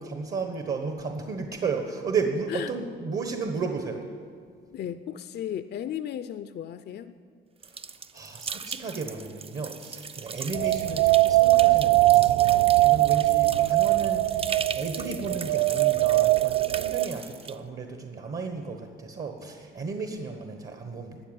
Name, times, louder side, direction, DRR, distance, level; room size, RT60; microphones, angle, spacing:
voice 1, 0.0-4.0 8.1-21.2, right 4 dB, 50° right, 5 dB, 1.3 m, -33 dB
voice 2, 4.7-7.1, left 10 dB, 55° left, 12 dB, 0.5 m, -35 dB
sound 1, 7.6-17.6, right 5 dB, 30° right, 0.5 m, -39 dB
sound 2, 10.5-17.1, right 19 dB, 80° right, 0.4 m, -21 dB
13.0 x 9.1 x 9.0 m, 2.2 s
cardioid pair, 90°, 20 cm